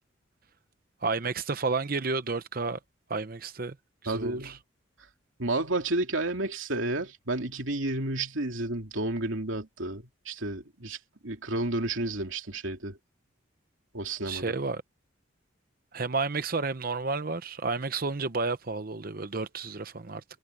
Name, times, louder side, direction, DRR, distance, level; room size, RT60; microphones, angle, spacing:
voice 1, 1.0-2.8 3.1-3.8 4.0-4.6 14.3-14.8 15.9-20.2, right 4 dB, 45° right, 0.7 m, -31 dB
voice 2, 4.1-4.6 5.4-11.0 11.2-13.0 13.9-14.5, right 2 dB, 70° right, 2.9 m, -31 dB
head